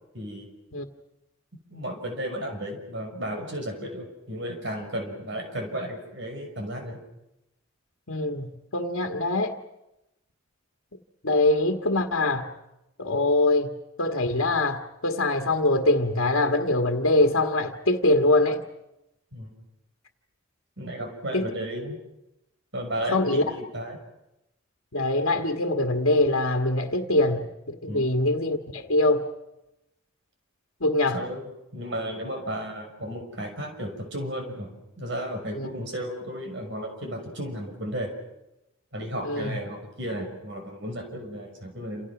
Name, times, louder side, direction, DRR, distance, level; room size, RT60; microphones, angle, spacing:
voice 1, 0.1-0.5 1.7-7.0 19.3-19.5 20.8-22.0 22.7-24.0 27.9-28.1 31.1-31.4 31.7-38.1 38.9-42.1, equal, 55° right, 5 dB, 6.1 m, -34 dB
voice 2, 8.1-9.5 11.2-12.5 13.0-18.6 21.3-21.5 23.1-23.4 24.9-29.2 30.8-31.2 35.5-35.7 39.2-39.6, left 2 dB, 75° left, 3 dB, 1.7 m, -23 dB
28.5 x 28.0 x 6.1 m, 0.92 s
head